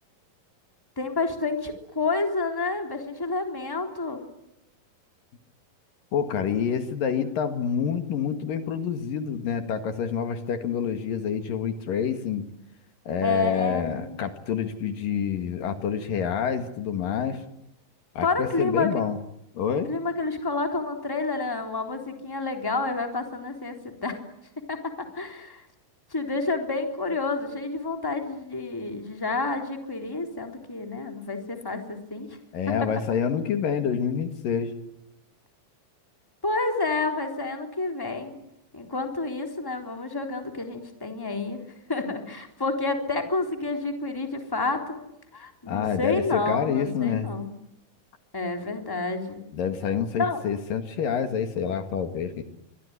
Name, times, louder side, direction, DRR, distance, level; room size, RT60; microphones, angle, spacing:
voice 1, 1.0-4.2 13.2-14.2 18.2-19.0 19.9-24.2 24.7-25.6 26.1-32.4 36.4-38.4 38.7-41.6 41.9-45.0 45.3-47.5 48.3-49.4 50.2-50.4, left 3 dB, 5° left, 4 dB, 3.2 m, -29 dB
voice 2, 6.1-12.5 13.1-17.4 18.2-19.2 19.6-19.9 32.5-34.7 45.7-47.3 49.5-52.4, left 7 dB, 70° left, 8 dB, 3.6 m, -27 dB
25.0 x 24.0 x 9.7 m, 0.84 s
omnidirectional pair, 4.1 m